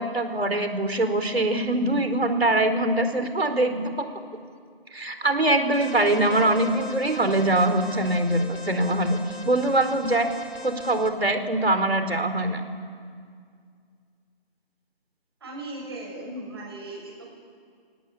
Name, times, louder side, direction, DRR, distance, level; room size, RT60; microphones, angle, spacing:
voice 1, 0.0-4.1 4.9-9.2 9.4-10.3 10.6-12.6, right 1 dB, 85° right, 8 dB, 4.2 m, -23 dB
Alarm, 5.7-11.1, left 2 dB, 85° left, 3.8 m, -41 dB
voice 2, 15.4-17.2, right 1 dB, 25° right, -1 dB, 6.5 m, -37 dB
23.5 x 18.5 x 8.7 m, 2.1 s
figure-of-eight pair, 170°, 30 cm